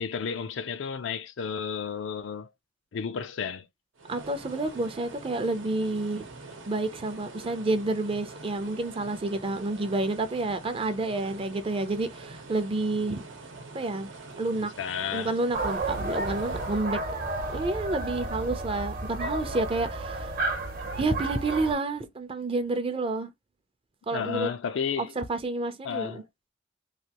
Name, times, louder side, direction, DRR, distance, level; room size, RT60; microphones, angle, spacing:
voice 1, 0.0-2.5 2.9-3.7 14.8-15.3 24.1-25.1 25.8-26.2, left 7 dB, 75° left, 0.4 m, -32 dB
sound 1, 4.0-16.9, right 3 dB, 90° right, 0.9 m, -45 dB
voice 2, 4.1-6.2 6.7-13.2 13.7-14.1 14.4-14.7 15.1-17.0 17.5-20.3 20.9-23.3 24.1-24.5 25.0-26.2, right 2 dB, 30° right, 0.5 m, -29 dB
sound 2, 15.5-21.7, right 2 dB, 50° right, 0.8 m, -32 dB
3.2 x 2.3 x 2.8 m
head